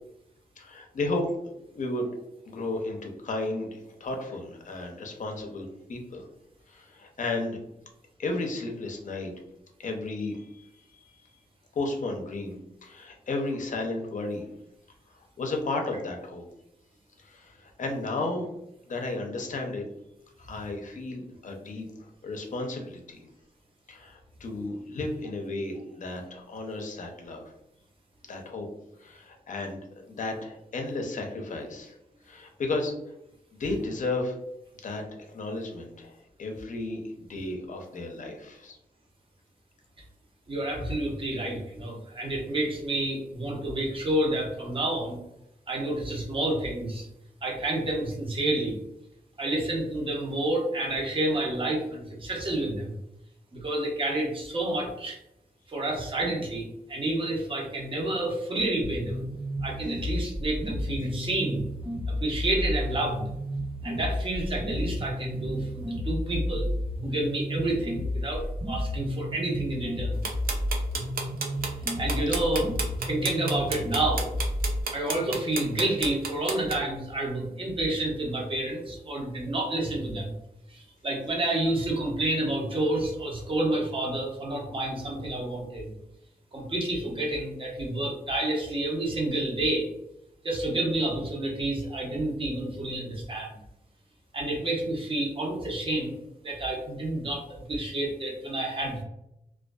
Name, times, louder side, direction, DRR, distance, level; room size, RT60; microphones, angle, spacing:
voice 1, 0.6-2.1 2.4-6.3 6.7-7.6 8.2-9.3 9.8-11.1 11.7-12.6 12.8-14.5 15.4-16.4 17.2-18.5 18.9-19.8 20.4-23.3 23.9-27.4 28.3-28.7 29.0-29.8 30.1-31.9 32.2-32.9 33.5-34.4 34.8-35.0 35.3-38.8, left 2 dB, 55° left, 2 dB, 0.5 m, -33 dB
voice 2, 40.5-45.2 45.7-47.1 47.4-48.7 49.4-52.9 53.5-55.2 55.7-59.2 59.6-61.6 62.1-63.2 63.8-66.7 67.0-70.3 72.0-72.7 73.1-74.3 74.9-80.3 80.7-85.9 86.5-89.9 90.4-93.6 94.3-96.1 96.4-99.0, right 1 dB, 35° right, -1 dB, 0.7 m, -29 dB
sound 1, 58.8-74.8, equal, 50° right, 1.2 m, -32 dB
sound 2, 70.2-76.7, right 4 dB, 70° right, 0.5 m, -31 dB
2.5 x 2.3 x 2.2 m, 0.82 s
wide cardioid pair, 115°, 15 cm